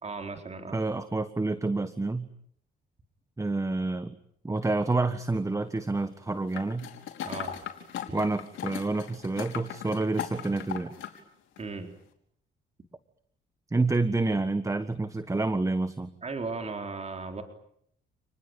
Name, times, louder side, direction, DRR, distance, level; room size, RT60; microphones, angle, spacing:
voice 1, 0.0-0.8 7.2-7.6 8.1-8.2 11.6-11.9 16.2-17.4, right 4 dB, 35° right, 5 dB, 4.3 m, -36 dB
voice 2, 0.7-2.3 3.4-4.2 4.4-6.9 8.1-10.9 13.7-16.1, right 3 dB, 15° right, 12 dB, 1.5 m, -28 dB
sound 1, 6.5-11.2 11.6-11.7, left 10 dB, 75° left, 5.0 m, -38 dB
30.0 x 20.0 x 9.4 m, 0.71 s
cardioid pair, 90°, 20 cm